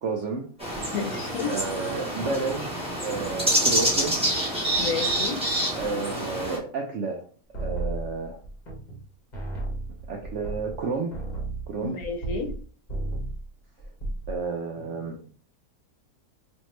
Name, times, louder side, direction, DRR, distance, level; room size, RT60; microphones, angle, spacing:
voice 1, 0.0-0.5 1.5-2.7 3.0-4.2 5.7-7.3 7.6-8.4 10.1-11.1 11.7-12.0 14.3-15.2, right 4 dB, 70° right, 2 dB, 0.7 m, -31 dB
sound 1, 0.6-6.6, right 1 dB, 5° right, 1.0 m, -27 dB
voice 2, 0.9-1.5 4.8-5.4 11.8-12.5, left 5 dB, 65° left, 3 dB, 1.2 m, -31 dB
sound 2, 7.5-9.1 9.3-12.6 12.9-13.5 13.8-14.4, right 2 dB, 35° left, 0.9 m, -33 dB
4.3 x 2.6 x 3.1 m, 0.42 s
omnidirectional pair, 1.8 m